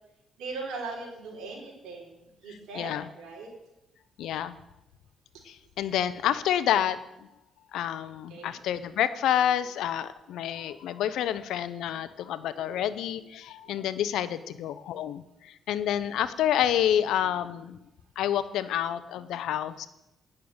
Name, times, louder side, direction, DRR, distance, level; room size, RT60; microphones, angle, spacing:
voice 1, 0.4-2.1 2.4-3.5 8.3-8.5 13.6-13.8, right 3 dB, 80° right, -2 dB, 4.0 m, -39 dB
voice 2, 2.7-3.1 4.2-4.5 5.5-7.0 7.7-17.8 18.2-19.9, left 10 dB, 80° left, 14 dB, 0.7 m, -28 dB
9.4 x 6.6 x 8.8 m, 0.91 s
cardioid pair, 90°, 0 cm